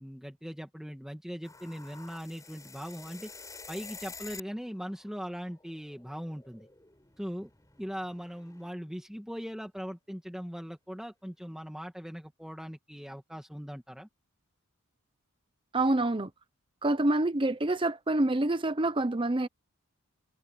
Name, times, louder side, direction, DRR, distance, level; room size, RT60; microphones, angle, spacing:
voice 1, 0.0-3.3 3.7-6.7 7.2-7.5 7.8-14.1, equal, ahead, 1.9 m, -40 dB
sound 1, 1.4-4.6 4.9-8.7, left 4 dB, 15° left, 5.4 m, -49 dB
voice 2, 15.7-16.3 16.8-19.5, right 2 dB, 25° right, 0.7 m, -27 dB
head